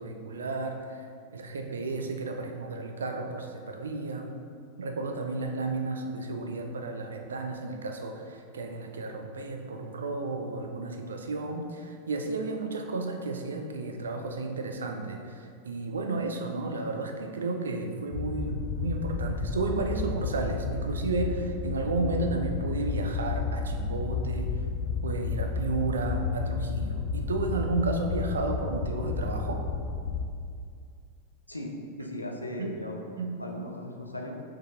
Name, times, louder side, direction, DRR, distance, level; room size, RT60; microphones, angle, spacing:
voice 1, 0.0-4.3 4.8-24.5 25.0-29.6 32.6-32.7 33.2-33.7, right 3 dB, 70° right, 4 dB, 0.7 m, -32 dB
sound 1, 18.1-30.3, left 5 dB, 40° left, 0.5 m, -32 dB
voice 2, 31.5-33.0 33.4-34.3, left 1 dB, 85° left, 1 dB, 0.7 m, -37 dB
6.4 x 4.8 x 3.8 m, 2.3 s
figure-of-eight pair, 90°, 0 cm